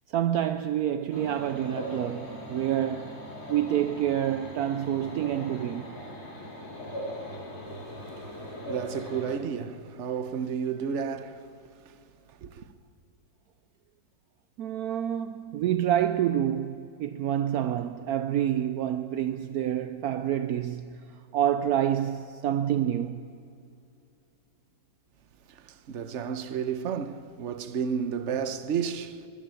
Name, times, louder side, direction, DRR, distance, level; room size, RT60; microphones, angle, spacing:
voice 1, 0.1-3.2 3.5-6.0 14.6-23.3, right 10 dB, 75° right, 0.8 m, -28 dB
sound 1, 1.1-9.3, equal, 90° left, 5.3 m, -40 dB
voice 2, 8.7-11.5 12.4-12.6 25.6-29.3, right 7 dB, 50° right, 0.9 m, -32 dB
21.5 x 13.5 x 9.0 m
omnidirectional pair, 2.2 m